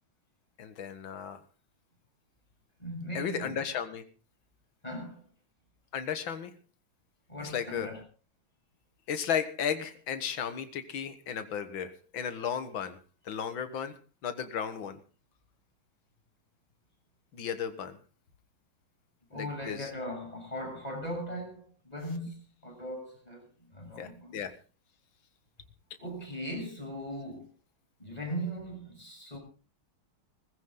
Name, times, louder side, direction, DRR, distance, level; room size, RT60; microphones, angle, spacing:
voice 1, 0.6-1.4 3.1-4.0 5.9-6.5 7.4-7.9 9.1-13.0 13.3-15.0 17.3-18.0 19.3-19.9 24.0-24.5, left 8 dB, 65° left, 2.2 m, -34 dB
voice 2, 2.8-3.6 4.8-5.2 7.3-8.0 19.3-24.4 26.0-27.5 28.0-29.4, equal, 15° left, 7.4 m, -39 dB
18.5 x 15.5 x 3.8 m
omnidirectional pair, 2.3 m